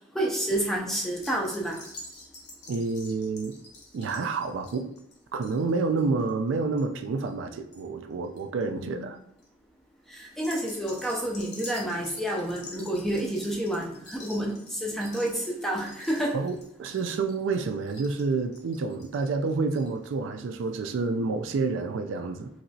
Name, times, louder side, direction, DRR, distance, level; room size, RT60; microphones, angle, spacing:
voice 1, 0.1-1.8 8.8-9.1 10.1-16.4, right 1 dB, ahead, 0.3 m, -29 dB
sound 1, 1.0-7.8 8.1-8.6 9.1-9.5 10.3-20.1 20.4-20.5 20.7-20.8, left 2 dB, 55° left, 0.8 m, -47 dB
voice 2, 2.7-3.6 3.9-4.9 5.3-9.2 16.3-22.5, right 4 dB, 75° right, 0.3 m, -29 dB
3.2 x 2.9 x 2.6 m
head